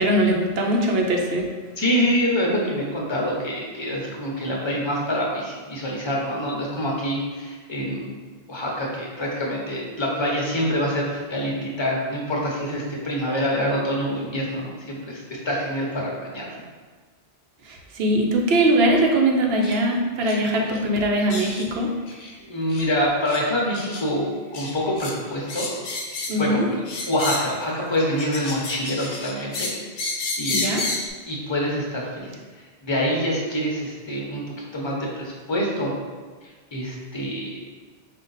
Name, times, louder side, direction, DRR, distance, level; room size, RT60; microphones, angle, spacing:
voice 1, 0.0-1.5 17.6-21.9 26.3-26.7 30.5-30.8, right 1 dB, 75° right, 0 dB, 0.9 m, -21 dB
voice 2, 1.8-8.1 8.5-16.5 22.5-25.8 26.4-29.7 30.4-30.7 31.3-32.3 32.8-35.9 36.7-37.6, equal, 30° left, -2 dB, 0.8 m, -26 dB
sound 1, 19.6-19.8 20.2-20.4 20.7-20.8 21.3-21.7 22.1-22.3 22.7-22.9 23.3-23.4 23.7-24.0 24.5-25.1 25.5-26.5 26.9-27.6 28.0-31.1, left 3 dB, 70° left, 0.8 m, -31 dB
5.0 x 2.4 x 3.9 m, 1.4 s
omnidirectional pair, 1.0 m